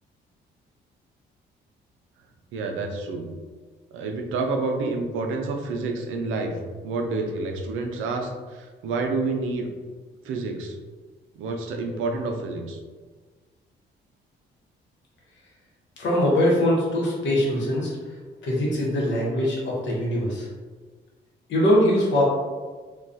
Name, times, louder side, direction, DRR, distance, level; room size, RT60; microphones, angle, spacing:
voice 1, 2.5-3.3 3.9-6.5 6.8-9.7 10.2-10.8 11.4-12.8, right 3 dB, 80° right, 3 dB, 0.4 m, -28 dB
voice 2, 16.0-17.9 18.4-20.5 21.5-22.2, left 1 dB, 70° left, -4 dB, 0.9 m, -22 dB
2.2 x 2.2 x 2.6 m, 1.4 s
cardioid pair, 90°, 20 cm